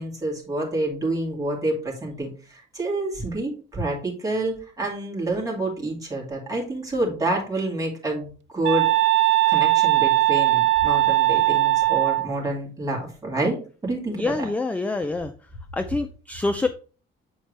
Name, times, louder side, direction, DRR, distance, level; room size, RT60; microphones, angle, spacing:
voice 1, 0.0-8.9 9.5-13.6 13.8-14.2, right 2 dB, 15° right, -2 dB, 2.4 m, -28 dB
sound 1, 8.6-12.3, right 16 dB, 70° right, 0.5 m, -19 dB
voice 2, 14.1-15.3 15.7-16.7, left 3 dB, 5° left, 8 dB, 0.4 m, -26 dB
8.1 x 4.3 x 3.2 m, 0.38 s
cardioid pair, 145°, 20 cm